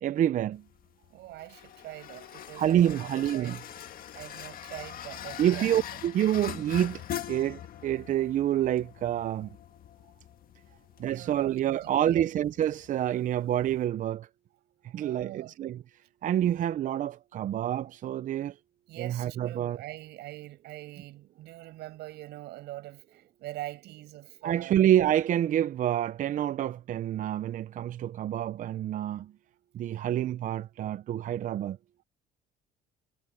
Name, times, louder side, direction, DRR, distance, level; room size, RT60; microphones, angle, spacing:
voice 1, 0.0-0.6 2.6-3.6 5.4-7.0 7.3-9.5 11.0-14.3 14.9-15.8 16.2-18.6 19.0-19.8 24.4-29.3 29.7-31.8, right 11 dB, 50° right, 0.5 m, -27 dB
sound 1, 0.5-13.9, left 10 dB, 60° left, 1.7 m, -43 dB
voice 2, 1.1-3.6 4.1-5.7 10.7-10.8 11.1-12.3 14.8-15.5 18.9-24.8, right 17 dB, 80° right, 7.6 m, -43 dB
cardioid pair, 110°, 17 cm